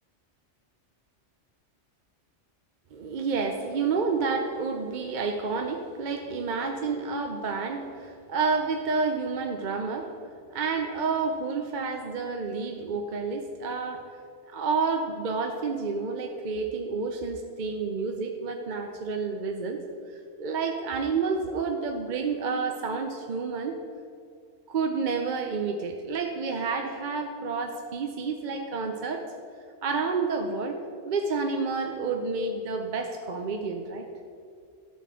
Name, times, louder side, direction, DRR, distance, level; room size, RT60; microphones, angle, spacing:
voice 1, 2.9-10.1 10.5-14.1 14.5-19.8 20.4-23.8 24.7-29.3 29.8-30.8 31.0-34.1, right 4 dB, 50° right, 4 dB, 0.7 m, -29 dB
12.5 x 4.3 x 7.4 m, 2.3 s
omnidirectional pair, 1.2 m